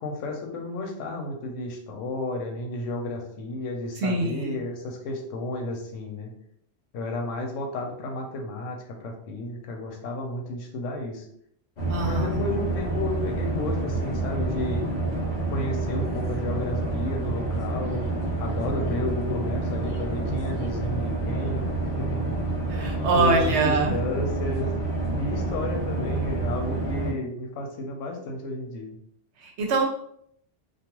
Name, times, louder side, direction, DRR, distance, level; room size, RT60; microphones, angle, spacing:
voice 1, 0.0-6.3 6.9-11.3 12.0-14.9 15.5-18.1 18.4-21.7 22.0-22.5 23.1-24.7 25.1-29.0, left 2 dB, 85° left, 2 dB, 1.0 m, -32 dB
voice 2, 4.0-4.6 11.9-12.4 22.7-24.0 29.4-29.8, right 3 dB, 70° right, 1 dB, 0.9 m, -24 dB
sound 1, 11.8-27.1, right 2 dB, 50° left, 0.6 m, -28 dB
2.3 x 2.3 x 2.9 m, 0.69 s
omnidirectional pair, 1.3 m